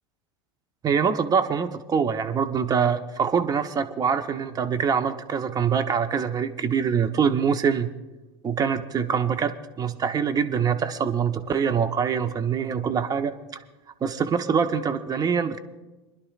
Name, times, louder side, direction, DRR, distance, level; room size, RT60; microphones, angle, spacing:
voice 1, 0.8-7.9 8.4-13.3 14.0-15.6, right 6 dB, 25° right, 8 dB, 0.9 m, -24 dB
27.5 x 11.0 x 2.4 m, 1.1 s
hypercardioid pair, 100°, 14 cm